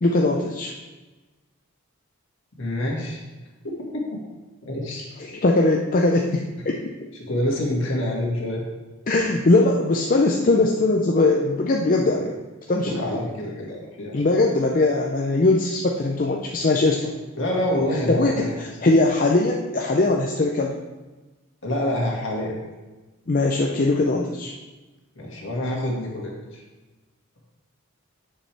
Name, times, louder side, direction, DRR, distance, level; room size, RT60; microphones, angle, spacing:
voice 1, 0.0-0.7 5.3-6.8 9.1-12.3 12.7-13.0 14.1-17.1 18.1-20.8 23.3-24.5, left 2 dB, 40° left, 0 dB, 0.5 m, -20 dB
voice 2, 2.6-3.2 4.7-5.0 7.3-8.6 12.8-14.3 17.4-18.5 21.6-22.5 25.2-26.6, left 1 dB, 60° left, -2 dB, 2.0 m, -26 dB
9.0 x 6.7 x 3.4 m, 1.2 s
head